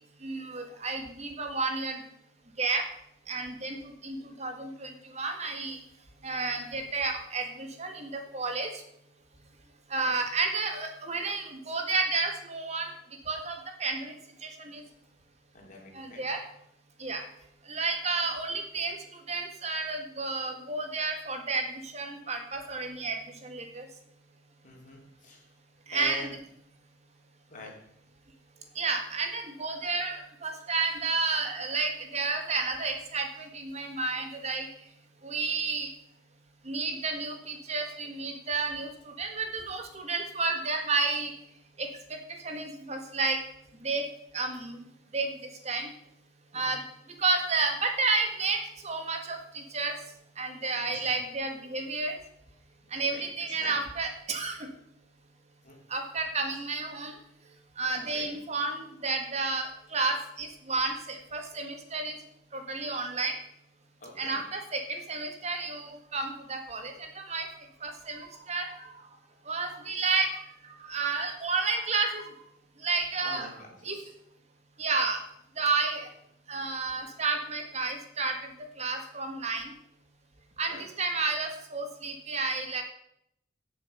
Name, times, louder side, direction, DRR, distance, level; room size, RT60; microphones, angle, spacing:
voice 1, 0.2-2.0 2.6-2.8 3.3-5.8 6.2-8.8 9.9-12.9 13.2-14.1 14.4-14.8 15.9-16.4 17.0-17.2 17.7-23.9 25.9-26.3 28.7-34.7 35.2-35.9 36.6-38.9 39.2-41.3 41.8-42.2 42.4-43.4 43.8-44.0 44.3-44.8 45.1-45.3 45.6-45.9 46.5-46.8 47.2-49.9 50.4-52.2 52.9-54.7 55.9-57.1 57.8-62.2 62.5-63.4 64.2-67.5 67.8-68.9 69.4-70.3 70.8-72.3 72.8-73.6 73.8-74.0 74.8-75.2 75.6-76.1 76.5-78.4 78.8-79.7 80.6-82.8, right 3 dB, 35° right, 4 dB, 1.7 m, -31 dB
voice 2, 15.5-16.2 24.6-25.4 25.9-26.3 27.5-27.7 46.5-46.8 50.9-51.0 53.1-53.3 53.6-53.8 55.6-55.7 57.9-58.3 64.0-64.4 73.2-73.5 73.9-74.1 80.7-80.8, left 3 dB, 45° left, 0 dB, 3.4 m, -44 dB
17.0 x 7.1 x 5.5 m, 0.73 s
head